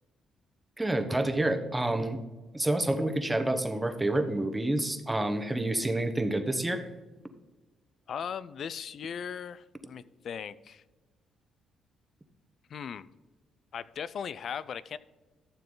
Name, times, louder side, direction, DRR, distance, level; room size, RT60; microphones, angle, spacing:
voice 1, 0.8-2.2 2.5-6.9, right 1 dB, 10° right, 7 dB, 1.1 m, -28 dB
voice 2, 8.1-10.8 12.7-13.1 13.7-15.0, left 7 dB, 60° left, 18 dB, 0.4 m, -38 dB
12.5 x 7.0 x 3.9 m, 1.2 s
cardioid pair, 90°, 0 cm